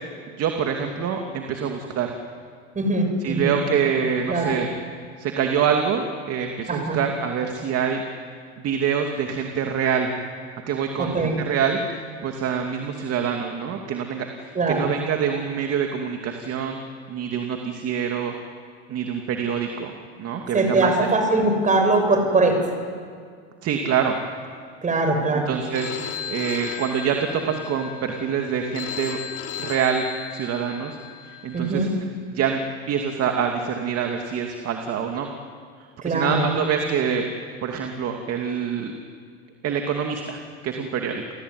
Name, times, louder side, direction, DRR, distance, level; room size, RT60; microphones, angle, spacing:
voice 1, 0.3-2.1 3.2-4.7 5.2-8.0 8.6-10.1 10.7-11.8 12.2-16.8 17.1-18.3 18.9-19.9 20.2-21.1 23.6-24.2 25.5-26.0 26.3-29.2 29.6-30.0 30.3-31.0 31.2-31.9 32.3-32.6 32.9-35.3 36.0-37.2 37.6-38.9 39.6-41.2, right 7 dB, 45° right, 3 dB, 2.7 m, -25 dB
voice 2, 2.7-3.6 4.3-4.5 6.7-7.0 11.0-11.4 14.5-14.8 20.5-22.7 24.8-25.5 31.5-31.9 36.0-36.5, right 2 dB, 20° right, 5 dB, 6.3 m, -21 dB
Telephone, 25.7-31.7, left 9 dB, 45° left, 4.4 m, -35 dB
29.5 x 18.0 x 9.7 m, 2.1 s
supercardioid pair, 115°, 34 cm